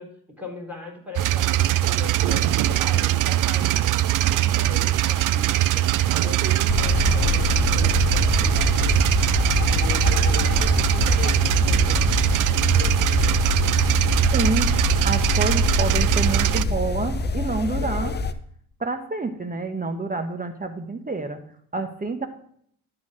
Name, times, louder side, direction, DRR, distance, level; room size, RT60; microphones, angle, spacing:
voice 1, 0.0-5.9 6.1-9.1 9.7-13.4, left 1 dB, 5° right, -2 dB, 3.8 m, -39 dB
sound 1, 1.2-16.6, right 14 dB, 50° right, 0.5 m, -21 dB
Thunder, 2.1-18.1, right 10 dB, 70° right, 0.8 m, -35 dB
sound 2, 6.7-18.3, left 4 dB, 25° left, 0.7 m, -24 dB
voice 2, 14.3-14.7 15.0-18.2 18.8-21.4 21.7-22.3, right 3 dB, 20° right, 7 dB, 1.2 m, -28 dB
12.0 x 3.9 x 6.5 m, 0.63 s
hypercardioid pair, 60°, 42 cm